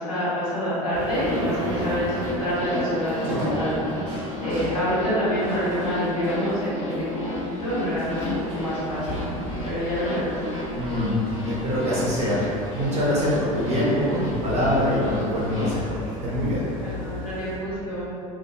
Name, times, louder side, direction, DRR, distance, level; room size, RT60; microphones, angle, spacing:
voice 1, 0.0-9.2 9.6-10.3 16.8-18.1, equal, 85° left, -12 dB, 1.5 m, -27 dB
sound 1, 0.9-17.6, equal, 65° right, 0.7 m, -35 dB
sound 2, 1.0-15.7, left 1 dB, 40° left, 0.9 m, -33 dB
voice 2, 10.8-12.4 12.7-16.6, equal, 35° right, -8 dB, 0.8 m, -24 dB
3.0 x 2.1 x 2.3 m, 2.6 s
hypercardioid pair, 75°, 18 cm